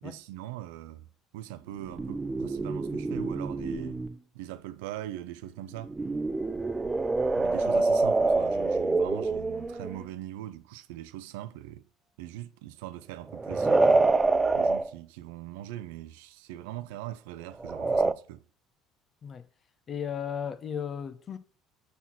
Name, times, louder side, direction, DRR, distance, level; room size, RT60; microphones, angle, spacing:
voice 1, 0.0-1.1 1.3-4.0 4.3-6.0 7.3-11.8 12.2-14.0 14.5-18.4, right 13 dB, 85° right, 0.5 m, -41 dB
sound 1, 1.9-4.1 5.8-10.0 13.3-14.9 17.6-18.1, right 3 dB, 20° right, 0.4 m, -26 dB
voice 2, 19.9-21.4, left 8 dB, 40° left, 0.8 m, -35 dB
5.7 x 4.2 x 6.0 m
supercardioid pair, 90°, 0 cm